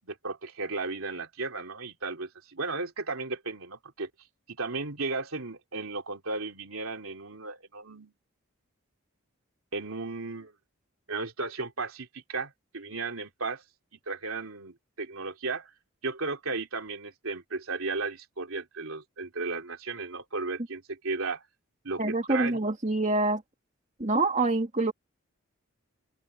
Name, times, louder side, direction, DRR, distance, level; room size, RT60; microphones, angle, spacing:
voice 1, 0.0-4.1 4.5-8.1 9.7-10.5 11.1-13.6 14.1-15.7 16.0-21.4 21.8-22.6, right 3 dB, 80° right, 3.0 m, -35 dB
voice 2, 22.0-23.4 24.0-24.9, right 2 dB, 35° right, 2.1 m, -26 dB
open air
head